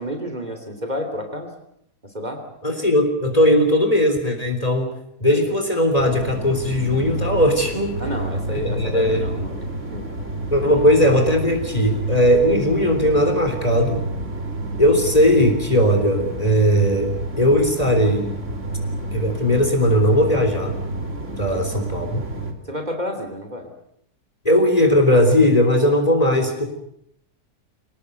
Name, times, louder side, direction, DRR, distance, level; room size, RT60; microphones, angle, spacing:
voice 1, 0.0-1.5 2.0-2.4 8.0-9.6 9.9-10.1 10.7-10.8 21.5-21.6 22.6-23.7, equal, 25° right, 5 dB, 3.1 m, -30 dB
voice 2, 2.6-4.9 5.2-8.0 8.5-9.3 10.5-14.0 14.8-18.3 19.1-20.7 21.4-22.2 24.5-26.6, equal, 20° left, 3 dB, 3.6 m, -18 dB
sound 1, 6.0-22.5, right 2 dB, 45° right, 3.1 m, -29 dB
25.5 x 19.0 x 8.2 m, 0.74 s
omnidirectional pair, 1.8 m